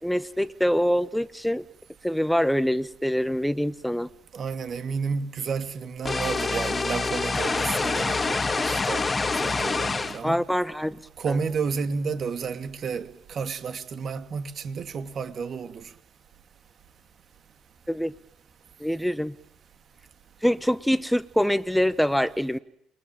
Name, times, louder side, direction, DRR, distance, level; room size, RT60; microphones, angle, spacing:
voice 1, 0.0-1.6 2.0-4.1 10.2-11.0 11.3-11.4 17.9-18.1 18.8-19.3 20.4-22.6, equal, ahead, 1.4 m, -24 dB
voice 2, 4.3-9.1 9.4-10.4 11.2-15.8, right 5 dB, 50° right, 2.6 m, -31 dB
sound 1, 6.0-10.2, left 3 dB, 25° left, 2.4 m, -26 dB
28.5 x 22.0 x 9.1 m
hypercardioid pair, 55°, 0 cm